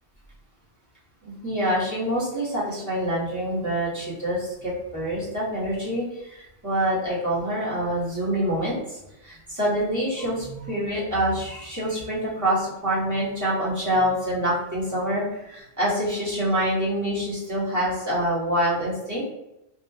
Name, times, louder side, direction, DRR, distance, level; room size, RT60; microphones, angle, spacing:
voice 1, 1.2-19.2, equal, 15° right, -9 dB, 1.0 m, -26 dB
2.6 x 2.2 x 2.2 m, 0.90 s
omnidirectional pair, 1.1 m